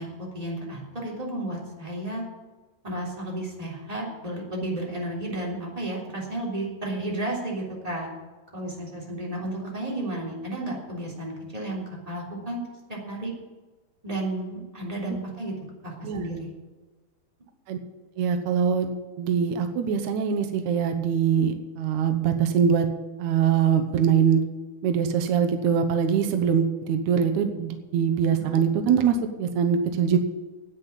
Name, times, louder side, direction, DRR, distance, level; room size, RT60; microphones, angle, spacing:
voice 1, 0.0-2.2 2.8-8.1 8.5-12.6 12.9-13.3 14.0-15.5 15.8-16.5 28.3-28.5, right 1 dB, 10° right, -3 dB, 2.9 m, -32 dB
voice 2, 18.2-22.9 23.2-24.4 24.8-30.2, right 7 dB, 80° right, 5 dB, 1.7 m, -23 dB
10.5 x 9.0 x 8.7 m, 1.3 s
omnidirectional pair, 4.7 m